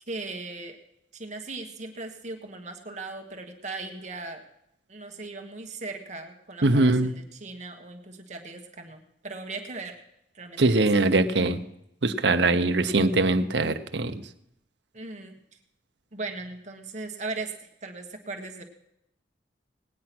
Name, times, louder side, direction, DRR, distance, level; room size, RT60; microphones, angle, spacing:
voice 1, 0.1-0.8 1.1-4.4 4.9-10.0 10.3-11.5 12.5-12.8 14.9-15.3 16.1-18.6, right 3 dB, 40° right, 3 dB, 1.4 m, -38 dB
voice 2, 6.6-7.1 10.6-11.6 12.0-14.2, right 2 dB, 65° right, 9 dB, 0.9 m, -22 dB
18.5 x 9.7 x 6.1 m, 0.80 s
head